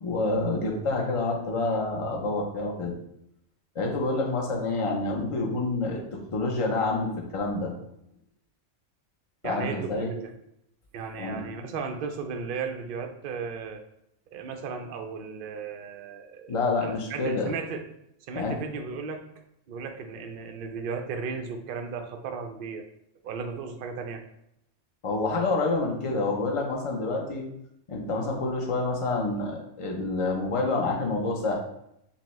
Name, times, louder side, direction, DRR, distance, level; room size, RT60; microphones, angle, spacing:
voice 1, 0.0-2.9 3.7-7.7 9.4-10.1 11.2-11.4 16.5-17.5 18.3-18.6 25.0-27.4 27.9-31.6, left 3 dB, 35° left, 0 dB, 0.6 m, -28 dB
voice 2, 9.4-10.3 10.9-13.8 14.3-17.8 18.3-19.2 19.7-22.9 23.2-24.2, right 5 dB, 60° right, 5 dB, 0.6 m, -35 dB
5.4 x 2.2 x 3.1 m, 0.79 s
omnidirectional pair, 1.2 m